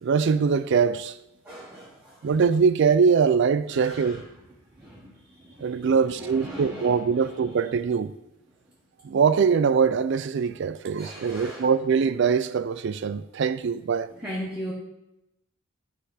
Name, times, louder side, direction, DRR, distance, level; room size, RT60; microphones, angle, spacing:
voice 1, 0.0-1.2 2.2-4.2 5.6-8.1 9.0-14.1, right 6 dB, 55° right, 0.3 m, -22 dB
voice 2, 1.4-2.3 3.8-4.2 4.8-5.1 5.4-5.9 6.2-7.0 11.0-11.7 14.2-14.7, equal, 10° right, 0.9 m, -38 dB
10.0 x 3.5 x 4.9 m
head